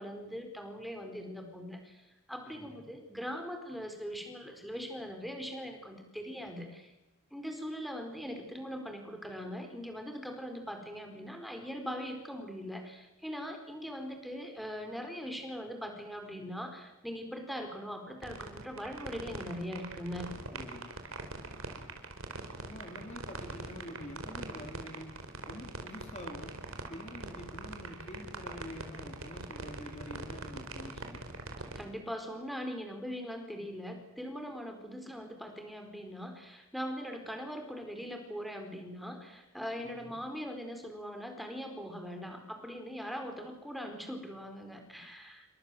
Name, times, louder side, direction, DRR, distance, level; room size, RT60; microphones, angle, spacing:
voice 1, 0.0-6.9 7.3-20.4 31.7-45.5, equal, ahead, 4 dB, 4.7 m, -41 dB
voice 2, 2.5-2.8 20.5-20.9 22.6-25.1 25.5-26.6 26.9-31.3 39.8-40.1, left 1 dB, 30° left, 4 dB, 3.5 m, -46 dB
sound 1, 18.2-31.8, right 3 dB, 75° right, 4.8 m, -41 dB
30.0 x 24.5 x 7.9 m, 0.95 s
head